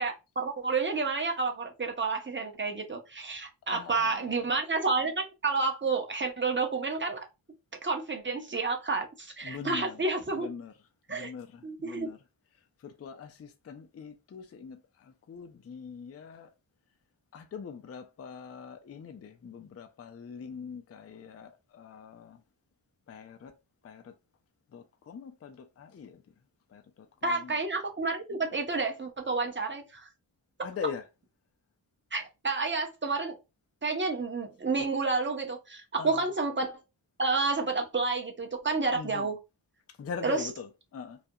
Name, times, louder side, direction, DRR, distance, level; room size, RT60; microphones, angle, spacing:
voice 1, 0.0-7.3 7.8-10.5 11.1-11.3 11.6-12.1 27.2-30.1 32.1-33.4 33.8-36.7 37.2-39.4 40.2-40.5, right 3 dB, 25° right, 0.6 m, -30 dB
voice 2, 3.7-4.6 9.4-10.8 11.1-12.2 12.8-16.5 17.3-22.4 23.1-23.5 23.8-24.1 24.7-26.2 26.7-27.6 30.6-31.1 36.0-36.3 38.9-39.3 40.0-41.2, left 6 dB, 35° left, 0.4 m, -43 dB
2.4 x 2.2 x 2.7 m
wide cardioid pair, 90°, 45 cm